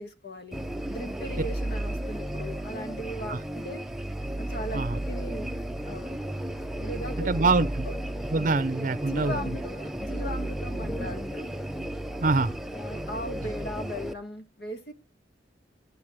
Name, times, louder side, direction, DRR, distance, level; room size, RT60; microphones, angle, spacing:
voice 1, 0.0-3.8 4.4-5.5 5.8-6.2 6.8-7.5 7.8-8.0 9.0-11.5 12.7-14.9, equal, 65° left, 1.8 m, -38 dB
sound 1, 0.5-14.1, right 1 dB, ahead, 0.6 m, -33 dB
voice 2, 7.3-7.9 8.3-9.4 12.2-12.5, right 3 dB, 45° right, 0.6 m, -25 dB
11.0 x 7.1 x 6.1 m
head